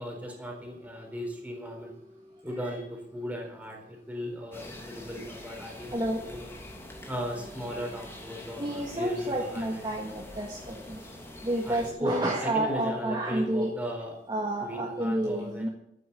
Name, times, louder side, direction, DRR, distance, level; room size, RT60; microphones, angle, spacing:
voice 1, 0.0-1.9 2.4-3.8 4.1-6.0 6.3-6.5 7.1-9.7 11.7-12.1 12.4-14.1 14.6-15.7, equal, 10° right, 1 dB, 4.1 m, -36 dB
sound 1, 4.5-11.9, left 1 dB, 15° left, 2.6 m, -45 dB
voice 2, 5.9-6.2 8.6-11.0 11.4-13.7 14.3-15.7, right 1 dB, 25° right, -1 dB, 1.7 m, -30 dB
13.0 x 9.2 x 8.1 m, 0.80 s
head